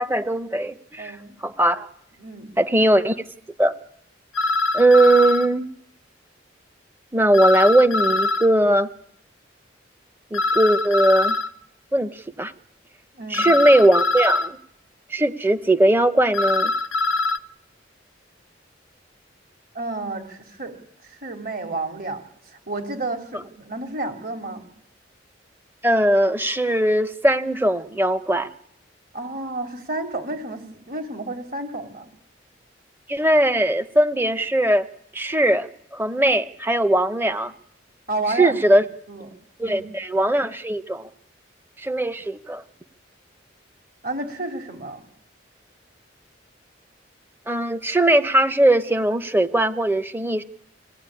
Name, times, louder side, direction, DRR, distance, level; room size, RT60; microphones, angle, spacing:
voice 1, 0.0-1.2 1.4-1.9 2.6-3.1 3.6-3.7 4.7-5.7 7.1-8.9 10.3-11.4 11.9-12.5 13.3-14.6 15.1-16.7 25.8-28.5 33.1-34.9 35.1-37.5 38.4-38.8 39.6-41.1 41.8-42.6 47.5-50.4, right 1 dB, 10° right, 13 dB, 0.9 m, -19 dB
voice 2, 1.0-1.3 2.2-2.5 13.2-13.5 19.7-20.7 21.0-22.2 22.5-24.6 29.1-32.1 38.1-38.6 39.1-39.3 39.6-39.9 44.0-45.0, right 2 dB, 50° right, 6 dB, 3.7 m, -31 dB
sound 1, 4.3-5.5 7.3-8.5 10.3-11.5 13.3-14.5 16.3-17.4, left 3 dB, 90° left, 0.9 m, -23 dB
25.0 x 17.5 x 9.9 m, 0.73 s
head